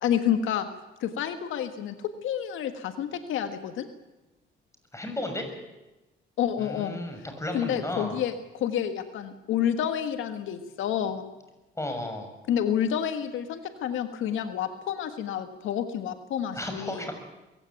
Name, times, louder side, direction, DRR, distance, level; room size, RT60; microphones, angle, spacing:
voice 1, 0.0-0.7 1.0-2.0 2.2-3.9 6.4-7.0 7.5-11.3 12.5-17.0, left 9 dB, 85° left, 8 dB, 1.7 m, -29 dB
voice 2, 4.9-5.5 6.6-8.2 11.8-12.3 16.5-17.1, left 1 dB, 15° left, 5 dB, 6.5 m, -33 dB
22.5 x 16.0 x 9.3 m, 1.0 s
cardioid pair, 90°, 20 cm